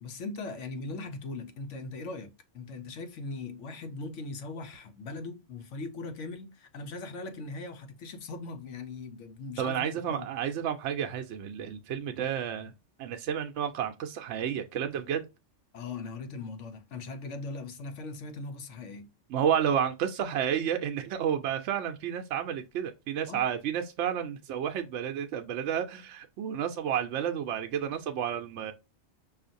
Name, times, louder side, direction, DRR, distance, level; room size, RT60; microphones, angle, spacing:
voice 1, 0.0-10.3 15.7-19.1 23.3-23.4, left 3 dB, 80° left, 1.1 m, -40 dB
voice 2, 9.6-12.7 13.0-15.3 19.3-28.7, right 9 dB, 75° right, 0.9 m, -31 dB
5.6 x 2.5 x 2.6 m
omnidirectional pair, 1.2 m